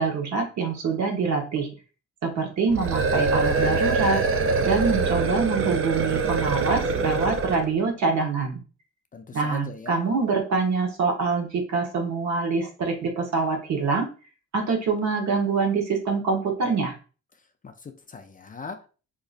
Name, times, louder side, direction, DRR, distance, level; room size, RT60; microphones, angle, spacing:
voice 1, 0.0-1.7 2.2-4.2 4.6-8.6 9.3-14.1 14.5-16.9, right 4 dB, 65° right, 1.2 m, -25 dB
sound 1, 2.7-7.7, right 4 dB, 45° right, 0.5 m, -24 dB
voice 2, 9.1-10.0 17.6-18.9, left 5 dB, 25° left, 0.5 m, -40 dB
3.9 x 2.9 x 2.4 m
cardioid pair, 90°, 30 cm